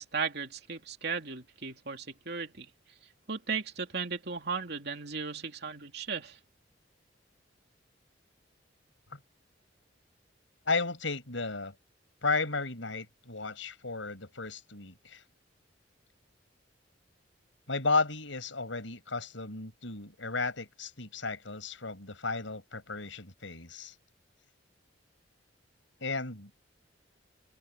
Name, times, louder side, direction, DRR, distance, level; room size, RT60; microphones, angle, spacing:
voice 1, 0.0-2.7 3.3-6.4, right 5 dB, 60° right, 2.9 m, -36 dB
voice 2, 10.7-11.7 12.2-15.2 17.7-23.9 26.0-26.5, left 3 dB, 90° left, 5.7 m, -34 dB
open air
head